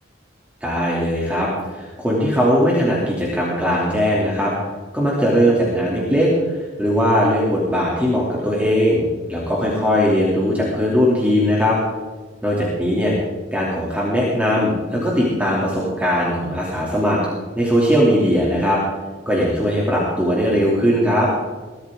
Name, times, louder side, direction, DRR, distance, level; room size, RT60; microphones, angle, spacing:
voice 1, 0.6-4.5 4.9-9.0 9.3-11.8 12.4-13.1 13.5-17.2 17.6-18.8 19.3-21.3, equal, 10° right, -5 dB, 2.9 m, -19 dB
21.5 x 13.5 x 3.8 m, 1.3 s
head